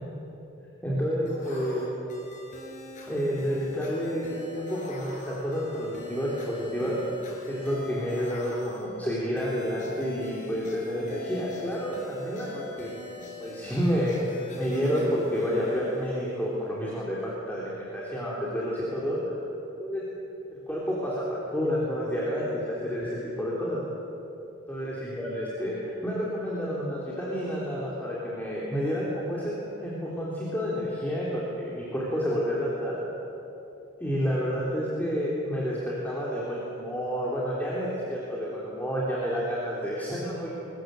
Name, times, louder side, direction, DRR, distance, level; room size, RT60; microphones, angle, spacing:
voice 1, 0.8-1.8 3.1-4.2 4.5-7.0 7.5-12.9 13.4-14.2 14.6-19.3 19.8-20.0 20.5-23.8 24.7-29.5 29.8-33.0 34.0-40.5, equal, 10° left, -6 dB, 3.5 m, -29 dB
sound 1, 1.3-16.7, left 2 dB, 40° left, 5.1 m, -44 dB
22.5 x 20.5 x 7.9 m, 3.0 s
head